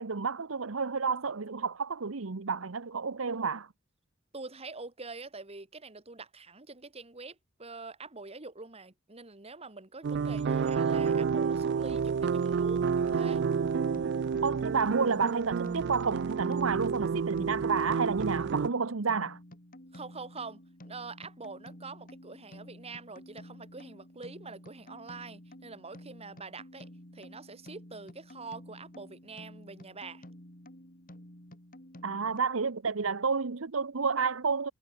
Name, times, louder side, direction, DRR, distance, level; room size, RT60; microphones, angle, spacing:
voice 1, 0.0-3.7 14.4-19.4 32.0-34.7, right 5 dB, 80° right, 0.9 m, -30 dB
voice 2, 4.3-13.4 19.9-20.6 20.8-30.2, right 3 dB, 30° right, 2.3 m, -45 dB
sound 1, 10.0-18.7, right 6 dB, 55° right, 0.4 m, -29 dB
sound 2, 12.9-32.4, left 1 dB, 45° left, 5.6 m, -51 dB
head